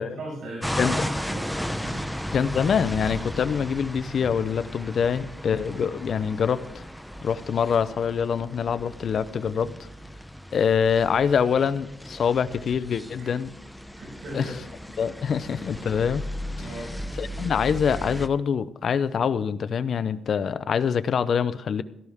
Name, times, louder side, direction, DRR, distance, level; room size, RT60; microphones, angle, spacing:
voice 1, 0.0-1.5 1.8-2.4 13.2-13.3 13.9-14.6 16.6-16.9, right 1 dB, 70° right, -3 dB, 6.0 m, -38 dB
sound 1, 0.6-18.3, equal, ahead, 0.7 m, -35 dB
voice 2, 2.3-6.8 7.2-9.7 10.5-13.5 14.3-14.5 15.0-16.2 17.2-21.8, left 7 dB, 55° left, 14 dB, 0.6 m, -25 dB
16.5 x 13.5 x 3.6 m, 0.76 s
cardioid pair, 105°, 0 cm